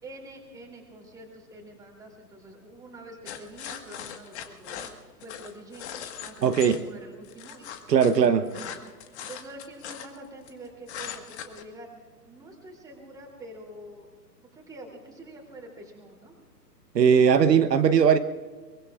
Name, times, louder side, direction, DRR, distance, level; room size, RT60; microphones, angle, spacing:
voice 1, 0.0-5.9 6.2-6.4 6.7-7.7 8.2-8.8 9.1-14.1 14.5-16.3, right 1 dB, 5° right, 3.2 m, -46 dB
sound 1, 3.2-6.8 7.2-10.5 10.9-11.6, left 9 dB, 40° left, 1.7 m, -40 dB
voice 2, 6.4-6.8 7.9-8.5 16.9-18.2, right 7 dB, 75° right, 1.1 m, -19 dB
23.5 x 23.0 x 2.5 m
hypercardioid pair, 140°, 50 cm